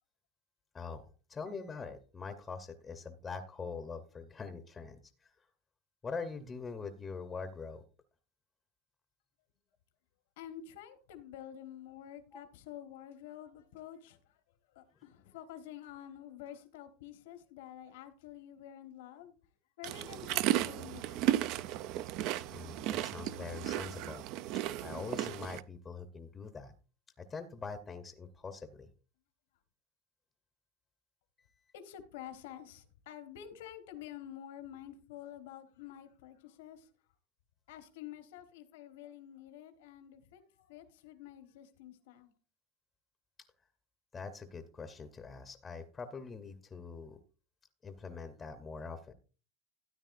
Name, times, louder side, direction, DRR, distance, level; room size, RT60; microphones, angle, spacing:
voice 1, 0.7-5.3 6.0-7.8 12.3-12.4 21.5-21.7 22.2-24.2 24.8-26.7 27.2-28.9 44.1-47.2 47.8-49.1, left 4 dB, 15° left, 0.7 m, -44 dB
voice 2, 10.4-14.4 14.7-19.3 19.8-21.2 31.7-36.9 37.7-42.3, left 10 dB, 80° left, 1.2 m, -49 dB
sound 1, 19.8-25.6, right 13 dB, 50° right, 0.4 m, -34 dB
13.0 x 9.8 x 2.5 m
supercardioid pair, 155°, 0 cm